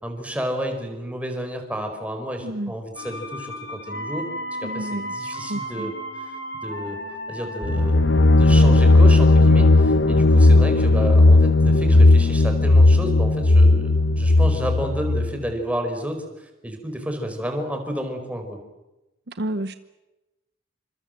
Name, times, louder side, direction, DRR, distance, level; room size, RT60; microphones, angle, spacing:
voice 1, 0.0-4.3 4.6-6.3 6.6-7.0 7.3-18.6, equal, 5° right, 5 dB, 4.8 m, -31 dB
sound 1, 3.0-8.1, equal, 75° left, 4.4 m, -34 dB
voice 2, 4.6-5.9 19.3-19.7, right 1 dB, 55° right, 11 dB, 1.0 m, -31 dB
sound 2, 7.6-15.3, left 2 dB, 60° left, 1.0 m, -15 dB
28.5 x 26.5 x 7.8 m, 1.0 s
head